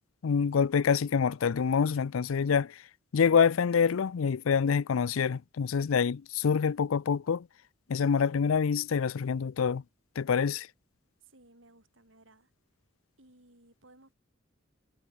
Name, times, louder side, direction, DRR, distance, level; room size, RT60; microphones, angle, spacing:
voice 1, 0.2-2.7 3.1-7.5 7.9-9.8 10.2-10.7, left 6 dB, 85° left, 0.5 m, -26 dB
voice 2, 11.2-12.5 13.2-14.2, right 2 dB, 70° right, 7.1 m, -59 dB
head